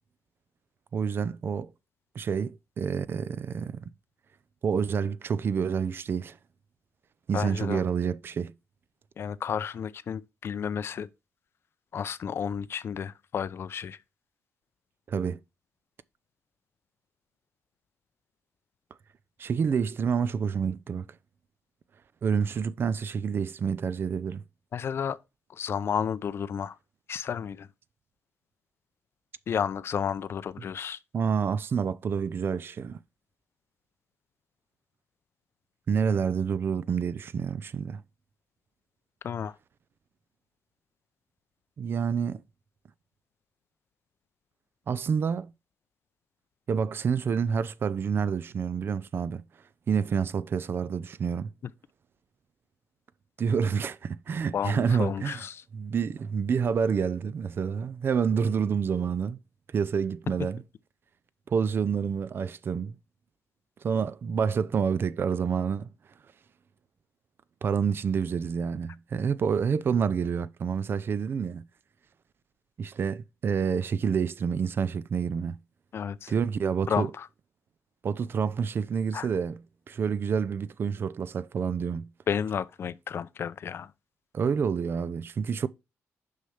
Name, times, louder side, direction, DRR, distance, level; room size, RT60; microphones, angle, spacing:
voice 1, 0.9-1.7 2.2-3.8 4.6-6.4 7.3-8.5 15.1-15.4 19.4-21.1 22.2-24.4 31.1-33.0 35.9-38.0 41.8-42.4 44.9-45.5 46.7-49.4 49.9-51.5 53.4-55.4 55.7-59.4 59.7-60.6 61.5-63.0 63.8-65.9 67.6-71.7 72.8-75.6 76.3-77.1 78.0-79.6 79.9-82.1 84.3-85.7, right 6 dB, 45° right, 0.4 m, -28 dB
voice 2, 7.3-7.8 9.2-11.1 11.9-14.0 24.7-25.2 25.5-26.8 27.1-27.7 29.5-31.0 39.2-39.6 54.5-55.6 75.9-76.3 76.9-77.3 79.1-79.3 82.3-83.9, left 7 dB, 50° left, 0.5 m, -32 dB
6.3 x 5.6 x 3.3 m
cardioid pair, 115°, 5 cm